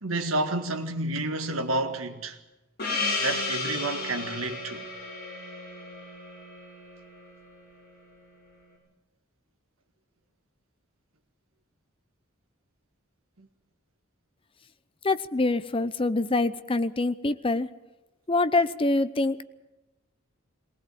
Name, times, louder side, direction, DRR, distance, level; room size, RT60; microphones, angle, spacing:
voice 1, 0.0-2.4 3.2-4.8 13.4-13.5, right 2 dB, 75° right, 1.8 m, -30 dB
Gong, 2.8-7.6, left 3 dB, 50° left, 6.6 m, -33 dB
voice 2, 15.0-17.7 18.3-19.4, left 2 dB, 25° left, 0.7 m, -25 dB
20.0 x 19.0 x 7.8 m
head